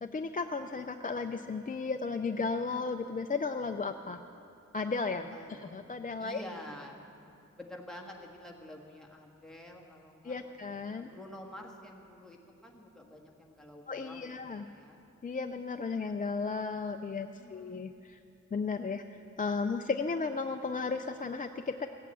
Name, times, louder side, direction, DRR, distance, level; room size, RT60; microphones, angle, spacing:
voice 1, 0.0-4.2 4.7-6.4 10.2-11.1 13.9-14.6 15.2-18.2 18.5-21.9, left 4 dB, 30° left, 6 dB, 0.4 m, -34 dB
voice 2, 5.2-7.0 7.6-15.0 17.2-17.9, left 1 dB, ahead, -1 dB, 1.6 m, -49 dB
16.0 x 8.5 x 8.3 m, 2.7 s
wide cardioid pair, 140°, 30 cm